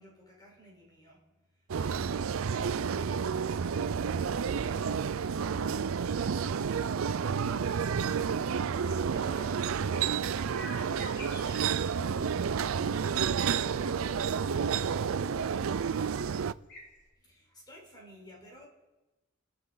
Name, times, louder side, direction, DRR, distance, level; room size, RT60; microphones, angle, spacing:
voice 1, 0.0-10.9 17.2-18.7, equal, 20° left, 4.4 m, -54 dB
sound 1, 1.7-16.5, right 6 dB, 80° right, 0.4 m, -30 dB
voice 2, 1.8-1.9, right 2 dB, 25° right, 3.7 m, -50 dB
sound 2, 8.7-17.1, left 1 dB, 55° left, 4.0 m, -51 dB
sound 3, 16.5-16.7, equal, 5° right, 3.6 m, -61 dB
30.0 x 11.5 x 4.0 m
head